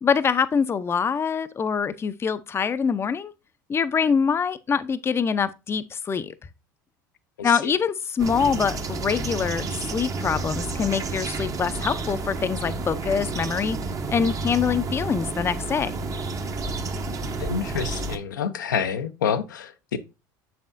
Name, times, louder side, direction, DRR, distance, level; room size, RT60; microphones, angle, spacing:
voice 1, 0.0-3.3 3.7-6.3 7.4-13.8 14.1-16.0, left 6 dB, 25° left, 0.5 m, -24 dB
voice 2, 7.4-7.8 17.4-20.0, left 7 dB, 85° left, 0.6 m, -28 dB
sound 1, 8.2-18.2, right 3 dB, 35° right, 0.8 m, -30 dB
7.0 x 5.6 x 2.5 m
hypercardioid pair, 75°, 10 cm